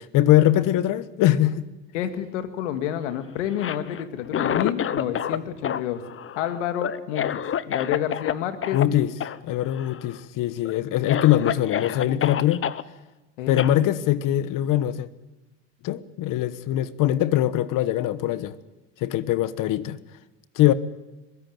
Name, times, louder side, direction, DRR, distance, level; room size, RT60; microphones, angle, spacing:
voice 1, 0.0-1.7 8.7-9.1 9.4-12.6 13.5-15.1 15.8-18.5 19.0-20.0 20.5-20.7, left 13 dB, 60° left, 1.3 m, -22 dB
voice 2, 1.9-6.0 6.4-7.4 7.7-8.8 13.4-13.8, left 10 dB, 90° left, 2.0 m, -29 dB
Cough, 3.5-5.4 5.6-8.3 8.6-8.8 9.2-9.4 9.7-10.2 10.6-10.7 11.1-12.8 13.6-13.7, left 9 dB, 35° left, 1.0 m, -28 dB
22.5 x 16.5 x 9.3 m
supercardioid pair, 85°, 35 cm